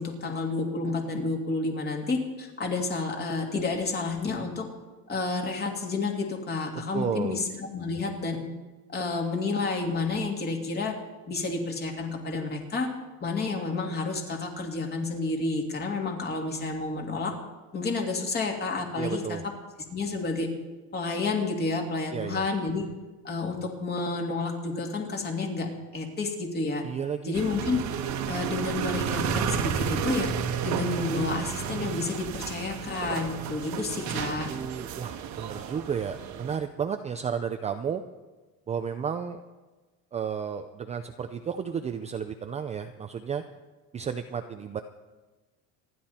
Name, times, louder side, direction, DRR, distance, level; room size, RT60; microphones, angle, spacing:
voice 1, 0.0-4.7 5.1-8.5 8.9-11.0 11.3-12.9 13.2-17.3 17.7-19.5 19.9-20.5 20.9-22.9 23.2-26.8 27.2-27.8 28.3-30.3 30.6-34.5, left 3 dB, 25° left, 2 dB, 2.7 m, -30 dB
voice 2, 6.9-7.4 19.0-19.4 22.1-22.4 26.8-27.4 33.7-34.2 34.5-38.0 38.7-39.4 40.1-43.4 43.9-44.8, right 7 dB, 20° right, 7 dB, 0.5 m, -32 dB
sound 1, 27.3-36.6, right 7 dB, 50° right, 1.3 m, -32 dB
27.5 x 11.0 x 4.3 m, 1.2 s
cardioid pair, 155°, 36 cm